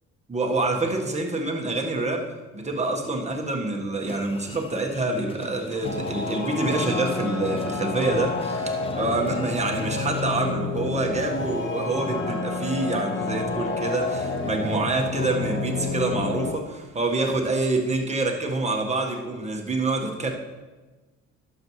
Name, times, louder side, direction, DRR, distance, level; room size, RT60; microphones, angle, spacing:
voice 1, 0.3-2.3 2.5-20.3, right 2 dB, 20° right, 1 dB, 1.5 m, -26 dB
sound 1, 4.0-10.6, left 3 dB, 20° left, 0.5 m, -43 dB
sound 2, 5.8-16.5, left 3 dB, 40° left, 1.1 m, -29 dB
11.0 x 7.1 x 3.2 m, 1.2 s
cardioid pair, 90°, 30 cm